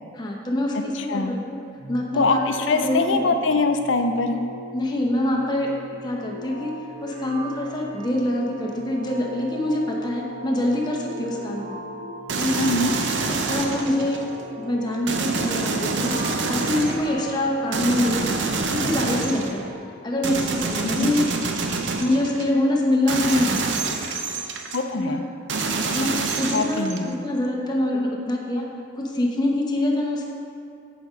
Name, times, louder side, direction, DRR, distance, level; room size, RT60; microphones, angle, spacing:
voice 1, 0.1-1.6 1.9-3.3 4.7-5.7 6.0-6.7 7.0-11.8 12.4-12.6 13.1-14.3 14.7-18.3 18.7-19.6 20.0-21.3 22.0-23.6 24.9-25.2 25.9-28.7 28.9-30.3, left 1 dB, 20° left, -1 dB, 0.8 m, -25 dB
voice 2, 0.9-1.3 2.1-4.4 12.6-12.9 21.0-21.1 24.7-25.2 26.5-27.1, left 3 dB, 80° left, 7 dB, 0.6 m, -23 dB
sound 1, 1.8-19.7, equal, 50° right, 1.5 m, -38 dB
sound 2, 12.3-14.3 15.1-17.1 17.7-19.6 20.2-22.5 23.1-24.8 25.5-27.1, right 4 dB, 70° right, 0.6 m, -27 dB
8.5 x 5.1 x 5.1 m, 2.4 s
head